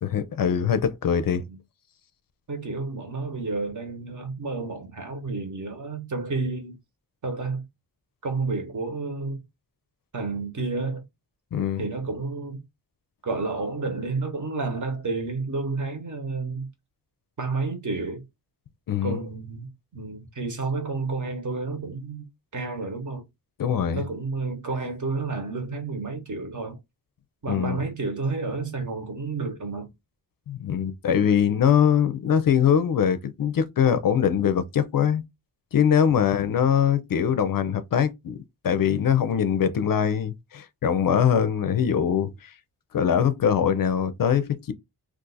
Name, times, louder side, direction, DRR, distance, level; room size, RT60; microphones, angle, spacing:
voice 1, 0.0-1.4 11.5-11.8 18.9-19.2 23.6-24.0 27.5-27.8 30.5-35.2 35.7-38.4 38.6-42.5 42.9-44.7, left 8 dB, 55° left, 0.5 m, -22 dB
voice 2, 2.5-6.8 7.2-7.6 8.2-9.4 10.1-11.0 11.8-12.6 13.2-16.7 17.4-18.2 19.0-22.2 22.5-23.2 23.9-26.8 27.4-29.9 36.1-36.5, right 3 dB, 50° right, 1.1 m, -30 dB
2.5 x 2.5 x 3.9 m
wide cardioid pair, 145°, 40 cm